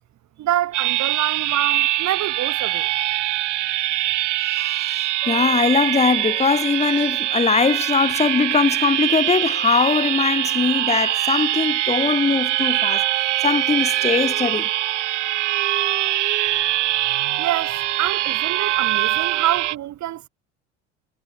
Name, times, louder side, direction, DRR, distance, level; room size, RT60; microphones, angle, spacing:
voice 1, 0.4-2.9 17.4-20.3, right 13 dB, 55° right, 5.8 m, -26 dB
sound 1, 0.7-19.8, right 15 dB, 90° right, 1.2 m, -23 dB
voice 2, 5.3-13.0 13.4-14.7, left 5 dB, 20° left, 1.6 m, -20 dB
hypercardioid pair, 75°, 35 cm